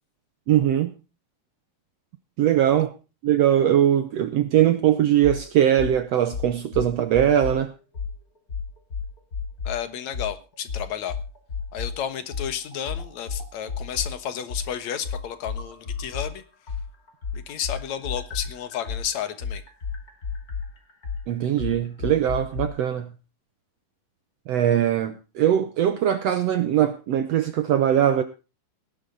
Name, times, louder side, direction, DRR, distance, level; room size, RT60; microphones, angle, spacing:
voice 1, 0.5-0.9 2.4-2.9 3.2-7.7 21.3-23.1 24.5-28.2, right 10 dB, 80° right, 1.4 m, -21 dB
sound 1, 5.2-5.4 5.8-5.9 6.3-7.6 7.9-8.1 8.5-9.8 10.1-10.3 10.7-11.9 12.3-16.3 16.7-22.7, left 5 dB, 25° left, 2.8 m, -31 dB
voice 2, 9.6-11.2 11.7-16.4 17.3-19.6, left 9 dB, 60° left, 2.3 m, -32 dB
18.0 x 11.0 x 4.0 m
omnidirectional pair, 4.1 m